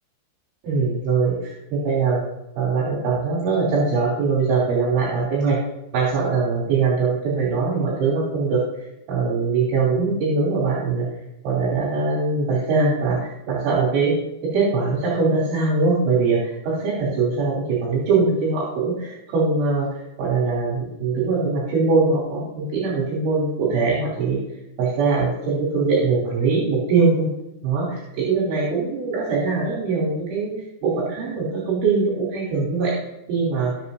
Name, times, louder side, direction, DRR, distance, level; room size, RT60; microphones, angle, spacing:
voice 1, 0.6-2.2 2.6-5.6 5.9-8.6 9.1-11.1 11.4-14.2 14.4-19.9 20.2-24.4 24.8-27.3 27.6-30.5 30.8-32.9 33.3-33.7, right 4 dB, 70° right, -6 dB, 5.3 m, -22 dB
19.0 x 7.8 x 2.6 m, 0.88 s
omnidirectional pair, 5.8 m